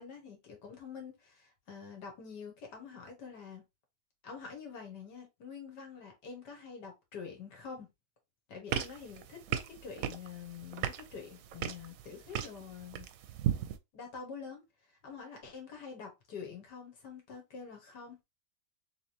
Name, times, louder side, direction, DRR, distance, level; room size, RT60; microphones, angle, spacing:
voice 1, 0.0-3.6 4.2-7.9 8.5-13.1 13.9-14.6 14.9-18.2, left 6 dB, 90° left, 2.0 m, -46 dB
sound 1, 8.7-13.8, right 10 dB, 70° right, 0.9 m, -37 dB
3.9 x 3.5 x 2.7 m
omnidirectional pair, 1.8 m